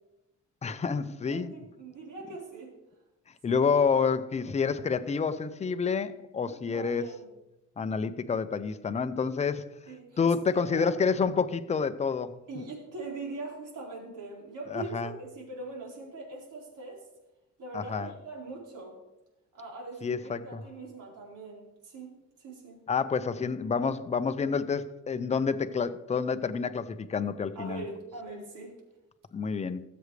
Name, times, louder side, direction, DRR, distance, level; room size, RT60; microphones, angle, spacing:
voice 1, 0.6-1.5 3.4-7.0 7.8-9.7 10.2-12.6 14.7-15.1 17.7-18.1 20.0-20.6 22.9-27.8 29.3-29.8, left 5 dB, 20° left, 0.5 m, -28 dB
voice 2, 1.2-2.7 3.5-3.6 6.5-7.3 9.9-10.9 12.5-17.1 17.6-19.0 19.5-22.8 23.8-23.9 27.5-28.8, right 3 dB, 80° right, 4.5 m, -42 dB
18.0 x 7.8 x 3.3 m
cardioid pair, 155°, 31 cm